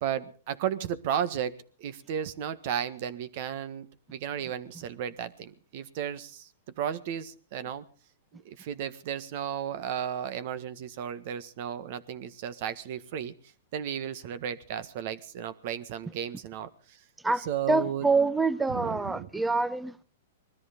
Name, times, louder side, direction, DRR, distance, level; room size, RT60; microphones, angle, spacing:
voice 1, 0.0-6.5 6.8-7.8 8.3-13.3 13.7-17.0 17.3-18.1 18.7-19.3, right 9 dB, 55° right, 1.5 m, -34 dB
voice 2, 17.2-20.0, right 3 dB, 5° right, 0.8 m, -26 dB
20.5 x 13.5 x 5.2 m
hypercardioid pair, 135°, 0 cm